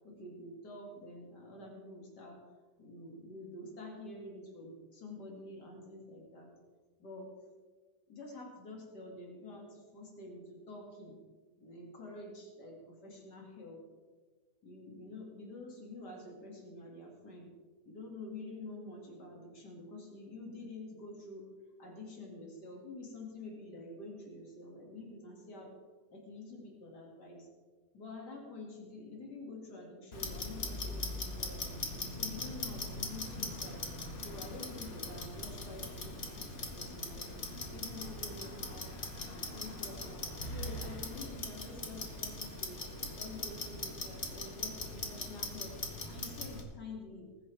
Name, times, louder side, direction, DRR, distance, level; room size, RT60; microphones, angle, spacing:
voice 1, 0.0-2.4 2.8-6.5 7.0-7.3 8.1-11.2 11.6-13.8 14.6-17.5 17.9-21.5 21.8-25.7 26.1-27.5 27.9-33.8 34.2-37.3 37.7-38.9 39.3-42.8 43.1-47.3, left 2 dB, 90° left, -1 dB, 2.9 m, -48 dB
Clock, 30.1-46.6, left 2 dB, 45° left, 1.9 m, -41 dB
20.0 x 10.0 x 3.4 m, 1.4 s
omnidirectional pair, 1.7 m